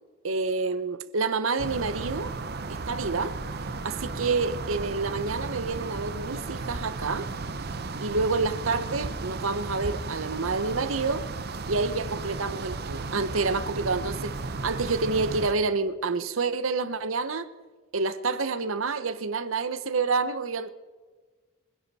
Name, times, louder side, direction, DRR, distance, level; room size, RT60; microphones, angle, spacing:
voice 1, 0.2-2.3 2.7-3.4 3.8-7.3 8.0-11.2 11.7-14.3 14.6-17.5 17.9-20.7, right 4 dB, 85° right, 0.9 m, -28 dB
sound 1, 1.6-15.5, right 3 dB, 50° right, 0.8 m, -34 dB
25.5 x 10.5 x 4.2 m
head